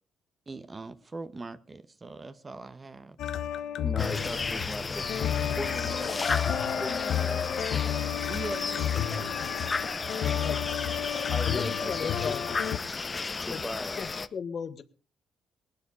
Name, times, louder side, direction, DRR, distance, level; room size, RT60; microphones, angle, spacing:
voice 1, 0.5-3.2 8.3-10.7 11.0-11.2, right 3 dB, 30° right, 12 dB, 1.3 m, -42 dB
sound 1, 3.2-12.8, left 10 dB, 75° left, 1.2 m, -31 dB
voice 2, 3.8-6.3 6.7-7.5 11.3-12.4 12.9-13.0 13.4-14.0, left 1 dB, 5° left, 11 dB, 1.4 m, -38 dB
sound 2, 4.0-14.3, left 4 dB, 30° left, 1.0 m, -33 dB
voice 3, 11.4-12.4 13.0-13.1 13.4-13.6 13.9-14.8, left 6 dB, 50° left, 11 dB, 1.6 m, -36 dB
19.0 x 12.0 x 5.0 m, 0.37 s
cardioid pair, 90°, 0 cm